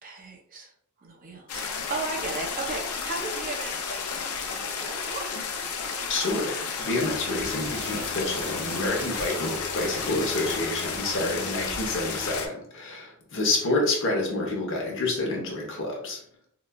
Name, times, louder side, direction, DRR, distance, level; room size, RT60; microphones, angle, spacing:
voice 1, 0.0-0.7 1.0-5.3, right 3 dB, 40° right, 1 dB, 0.6 m, -36 dB
sound 1, 1.5-12.5, left 5 dB, 80° left, 0.5 m, -32 dB
voice 2, 6.1-16.2, left 2 dB, 60° left, -1 dB, 0.9 m, -28 dB
sound 2, 7.0-12.4, right 2 dB, 70° right, 1.4 m, -44 dB
3.9 x 2.3 x 2.2 m, 0.65 s
head